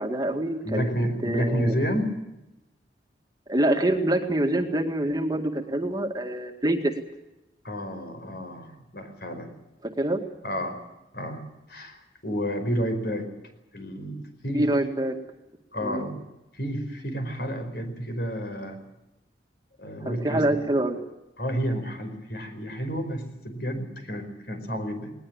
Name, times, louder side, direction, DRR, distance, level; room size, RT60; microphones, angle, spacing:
voice 1, 0.0-0.9 1.2-1.8 3.5-6.9 10.0-10.2 14.5-15.2 15.8-16.1 20.0-21.0, right 1 dB, 20° right, 4 dB, 2.0 m, -25 dB
voice 2, 0.6-2.1 7.6-9.5 10.4-10.8 11.1-13.3 13.7-14.7 15.7-16.3 16.5-18.8 19.8-20.5 21.4-25.1, equal, 60° left, 7 dB, 5.0 m, -30 dB
20.0 x 20.0 x 8.9 m, 0.96 s
head